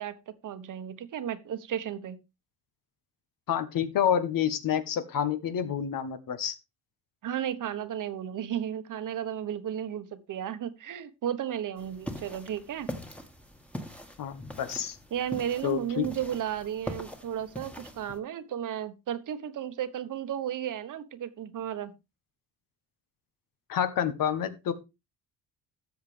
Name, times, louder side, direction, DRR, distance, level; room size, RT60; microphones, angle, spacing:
voice 1, 0.0-2.2 7.2-12.9 15.1-21.9, right 10 dB, 60° right, 1.2 m, -34 dB
voice 2, 3.5-6.6 14.2-15.0 15.6-16.0 23.7-24.7, left 9 dB, 65° left, 1.3 m, -28 dB
sound 1, 11.8-18.2, left 1 dB, 5° left, 1.6 m, -42 dB
13.0 x 7.3 x 3.3 m
cardioid pair, 85°, 36 cm